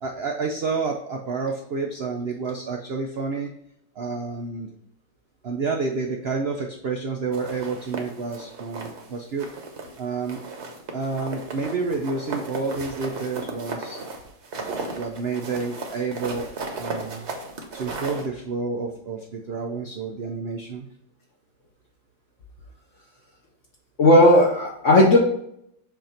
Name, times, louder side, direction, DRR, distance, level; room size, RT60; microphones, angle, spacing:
voice 1, 0.0-3.5 4.0-4.7 5.4-9.5 10.0-10.4 10.9-14.0 14.6-16.5 16.8-17.3 17.7-20.9, right 4 dB, 80° right, 2 dB, 0.5 m, -29 dB
sound 1, 7.3-9.1 9.4-10.0 10.3-18.3, right 3 dB, 50° right, 1.0 m, -35 dB
voice 2, 24.0-25.2, left 1 dB, 55° left, -2 dB, 1.0 m, -15 dB
7.1 x 2.6 x 5.7 m, 0.72 s
omnidirectional pair, 1.8 m